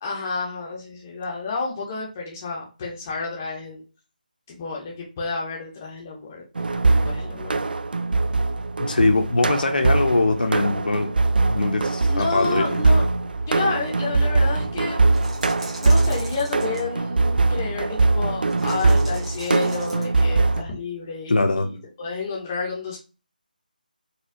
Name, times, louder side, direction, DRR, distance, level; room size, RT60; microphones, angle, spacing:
voice 1, 0.0-3.8 4.5-7.6 12.1-13.0 13.5-15.0 15.8-23.0, left 4 dB, 15° left, -3 dB, 0.6 m, -30 dB
sound 1, 6.6-20.6, right 3 dB, 80° right, 0.4 m, -22 dB
voice 2, 8.8-11.1 11.5-12.8 21.3-21.7, left 2 dB, 70° left, 5 dB, 0.7 m, -22 dB
sound 2, 15.1-16.8 18.5-20.2, right 2 dB, 35° right, 1.2 m, -40 dB
4.2 x 2.2 x 2.5 m, 0.33 s
figure-of-eight pair, 175°, 5 cm